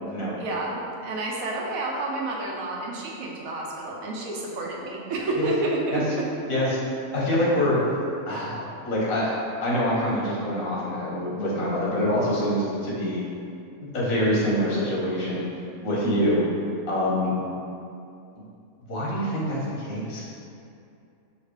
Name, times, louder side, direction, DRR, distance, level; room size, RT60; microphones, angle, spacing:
voice 1, 0.4-6.2 8.3-8.5 16.0-16.4, right 2 dB, 75° right, -3 dB, 1.1 m, -30 dB
voice 2, 6.5-7.8 8.3-8.6 8.8-9.3 9.6-13.2 13.9-15.4 15.8-16.4 16.9-17.3 18.9-20.3, left 1 dB, 70° left, -6 dB, 1.5 m, -25 dB
5.8 x 2.8 x 3.2 m, 2.6 s
omnidirectional pair, 1.5 m